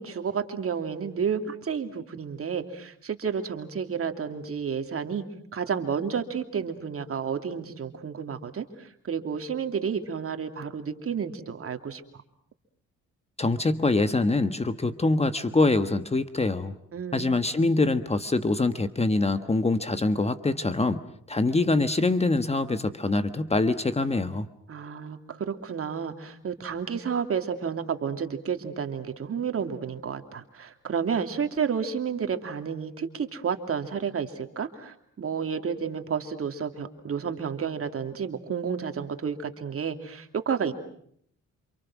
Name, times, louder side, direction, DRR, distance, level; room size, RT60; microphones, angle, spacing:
voice 1, 0.0-5.2 5.5-12.0 16.9-17.3 24.7-40.7, right 6 dB, 50° right, 6 dB, 3.0 m, -31 dB
voice 2, 13.4-16.7 17.1-21.0 21.3-24.5, left 2 dB, 20° left, 10 dB, 1.4 m, -24 dB
28.5 x 27.5 x 6.2 m, 0.66 s
cardioid pair, 90°, 30 cm